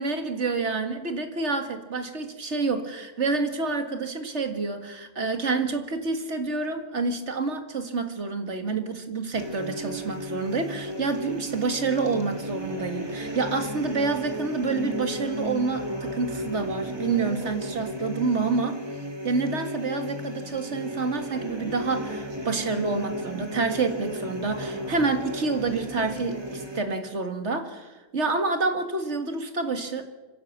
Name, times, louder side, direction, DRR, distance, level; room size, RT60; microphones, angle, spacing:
voice 1, 0.0-18.8 19.2-30.0, right 4 dB, 45° right, 7 dB, 2.1 m, -28 dB
sound 1, 9.3-26.8, right 1 dB, 15° right, 2.1 m, -34 dB
25.5 x 15.5 x 7.4 m, 1.2 s
omnidirectional pair, 1.6 m